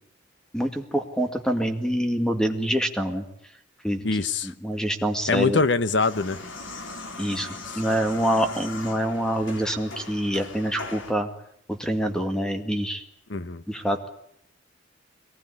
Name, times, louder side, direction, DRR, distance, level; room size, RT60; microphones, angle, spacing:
voice 1, 0.5-3.2 3.8-4.1 4.4-5.6 7.2-7.5 7.8-11.3 11.7-13.0 13.7-14.1, equal, 5° left, 6 dB, 2.1 m, -26 dB
voice 2, 4.0-4.5 5.3-6.4 7.7-7.8 13.3-13.6, left 3 dB, 65° left, 13 dB, 1.1 m, -24 dB
sound 1, 6.0-11.1, left 3 dB, 80° left, 3.7 m, -39 dB
23.0 x 19.5 x 9.8 m, 0.72 s
head